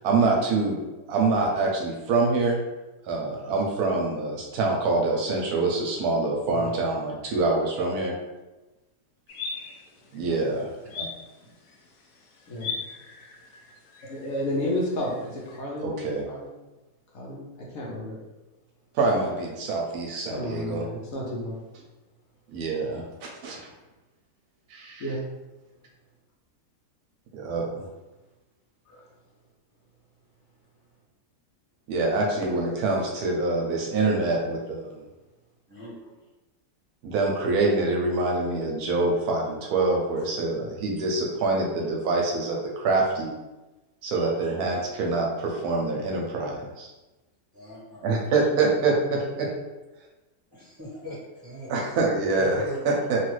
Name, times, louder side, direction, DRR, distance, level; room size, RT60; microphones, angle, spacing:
voice 1, 0.0-0.8 1.1-2.6 3.0-8.1 10.1-10.7 11.0-11.1 15.8-16.2 18.9-20.8 22.5-23.7 24.7-25.0 27.3-27.9 31.9-35.0 37.0-43.3 44.0-46.9 48.0-49.6 51.7-53.2, right 3 dB, 75° right, -1 dB, 1.0 m, -25 dB
sound 1, 9.3-15.6, left 5 dB, 85° left, 1.2 m, -40 dB
voice 2, 14.1-16.6 17.1-18.1 20.3-21.6 25.0-25.2 28.9-29.0, left 1 dB, 65° left, -4 dB, 1.1 m, -32 dB
voice 3, 35.7-36.0 44.1-44.3 47.5-48.0 50.5-51.9 52.4-52.9, equal, 15° right, -9 dB, 1.2 m, -39 dB
3.1 x 2.4 x 3.0 m, 1.1 s
omnidirectional pair, 1.7 m